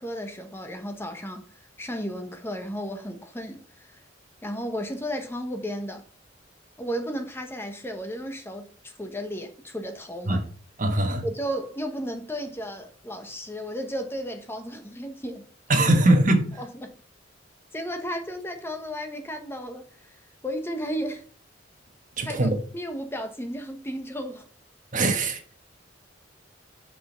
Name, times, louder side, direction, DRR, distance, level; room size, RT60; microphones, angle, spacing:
voice 1, 0.0-1.4 1.8-4.0 4.4-6.0 6.8-10.4 11.2-15.4 15.8-16.0 16.6-16.9 17.7-19.8 20.4-21.2 22.2-24.5, equal, 15° left, 1.1 m, -34 dB
voice 2, 10.8-11.2 15.7-16.5 22.2-22.6 24.9-25.4, right 1 dB, 45° right, 1.3 m, -21 dB
6.1 x 5.2 x 5.1 m
head